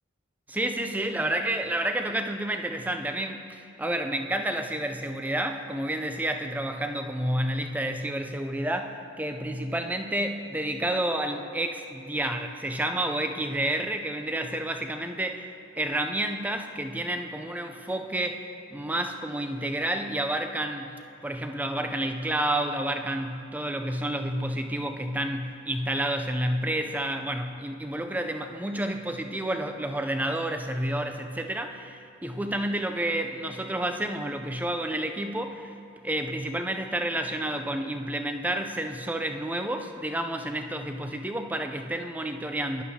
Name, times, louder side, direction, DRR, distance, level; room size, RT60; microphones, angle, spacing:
voice 1, 0.5-35.7 36.0-42.8, right 1 dB, 5° right, 6 dB, 0.4 m, -30 dB
14.5 x 11.0 x 2.8 m, 2.6 s
head